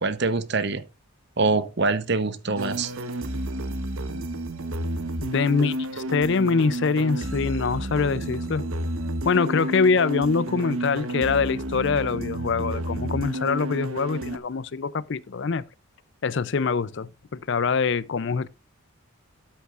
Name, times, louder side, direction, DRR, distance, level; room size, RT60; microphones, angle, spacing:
voice 1, 0.0-0.8 1.4-2.9, right 3 dB, 50° right, 0.9 m, -24 dB
sound 1, 2.6-14.4, right 1 dB, 75° right, 1.1 m, -31 dB
voice 2, 5.2-8.7 9.2-15.6 16.2-18.5, left 5 dB, 55° left, 0.5 m, -24 dB
13.0 x 8.0 x 2.4 m
head